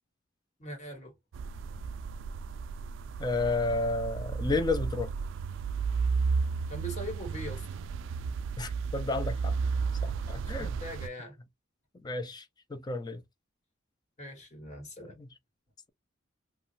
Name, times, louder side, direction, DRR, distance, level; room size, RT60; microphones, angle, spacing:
voice 1, 0.6-1.1 6.7-7.6 10.6-11.3 14.2-15.1, equal, 40° left, 1.3 m, -41 dB
sound 1, 1.3-11.1, right 5 dB, 70° right, 0.3 m, -33 dB
voice 2, 3.2-5.1 8.6-9.6 10.0-10.7 12.0-12.4 12.7-13.2 15.0-15.3, left 3 dB, 20° left, 0.5 m, -31 dB
2.9 x 2.4 x 2.7 m
head